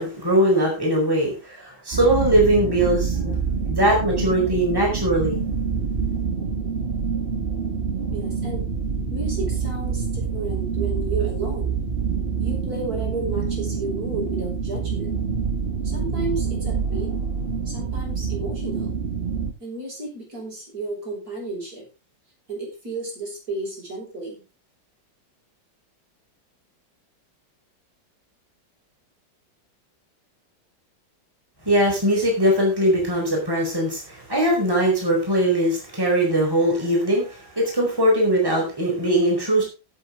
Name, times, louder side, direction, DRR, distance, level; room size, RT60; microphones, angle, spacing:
voice 1, 0.0-3.3 3.6-5.4 31.6-39.6, right 1 dB, 10° right, -1 dB, 4.6 m, -21 dB
sound 1, 1.9-19.5, right 6 dB, 35° right, 1.8 m, -26 dB
voice 2, 8.1-8.7 9.1-11.8 12.4-15.1 15.8-17.1 17.6-18.9 19.6-21.9 22.5-24.4, right 2 dB, 50° right, -1 dB, 6.6 m, -32 dB
16.5 x 7.8 x 3.7 m, 0.30 s
omnidirectional pair, 2.0 m